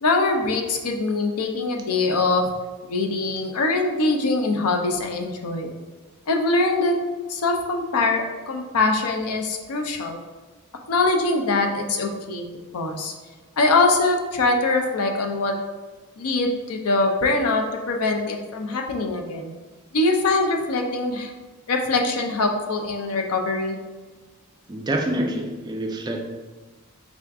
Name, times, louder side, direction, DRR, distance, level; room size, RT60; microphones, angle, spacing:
voice 1, 0.0-2.5 2.9-5.7 6.3-6.9 7.3-10.2 10.9-12.4 12.7-13.1 13.6-15.5 16.2-19.5 19.9-21.3 21.7-23.8, left 3 dB, 75° left, 3 dB, 0.5 m, -23 dB
voice 2, 24.7-26.2, right 1 dB, 20° right, 2 dB, 0.3 m, -26 dB
3.7 x 2.4 x 3.4 m, 1.3 s
head